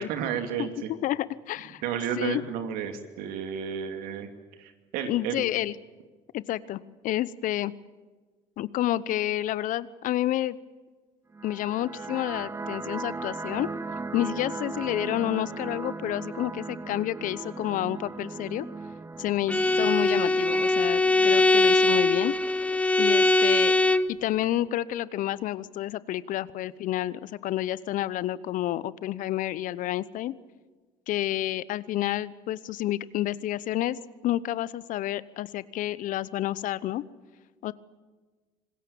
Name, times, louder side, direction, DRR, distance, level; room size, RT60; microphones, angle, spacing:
voice 1, 0.0-0.9 1.8-4.3 4.6-5.4, right 8 dB, 70° right, 7 dB, 2.6 m, -32 dB
voice 2, 1.0-1.8 2.2-2.4 5.1-5.7 6.3-7.7 8.6-10.6 11.4-13.7 14.1-18.7 19.2-22.3 23.0-23.7 24.1-30.3 31.1-34.0 34.2-37.0 37.6-37.7, left 14 dB, 60° left, 19 dB, 0.8 m, -29 dB
sound 1, 11.3-22.3, right 3 dB, 20° right, 1.2 m, -38 dB
Bowed string instrument, 19.5-24.2, left 2 dB, 10° left, 0.9 m, -22 dB
26.0 x 20.5 x 7.1 m, 1.4 s
hypercardioid pair, 65°, 15 cm